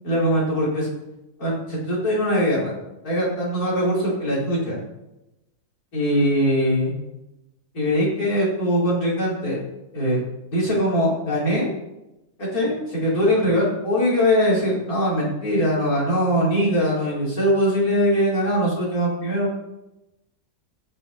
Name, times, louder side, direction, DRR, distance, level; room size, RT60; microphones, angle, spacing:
voice 1, 0.0-0.9 1.4-2.7 3.0-4.8 5.9-6.9 7.7-9.6 9.9-10.2 10.5-11.7 12.4-19.5, equal, 80° left, -6 dB, 4.8 m, -21 dB
16.0 x 6.9 x 4.3 m, 0.95 s
omnidirectional pair, 1.5 m